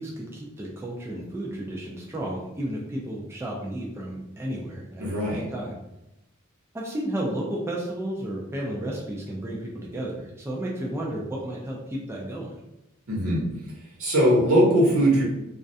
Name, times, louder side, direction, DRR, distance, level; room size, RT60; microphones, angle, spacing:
voice 1, 0.0-5.8 6.7-12.6, right 1 dB, 10° right, -3 dB, 0.3 m, -33 dB
voice 2, 5.0-5.4 13.1-13.4 14.0-15.2, equal, 80° right, -5 dB, 0.9 m, -20 dB
2.3 x 2.1 x 2.6 m, 0.90 s
head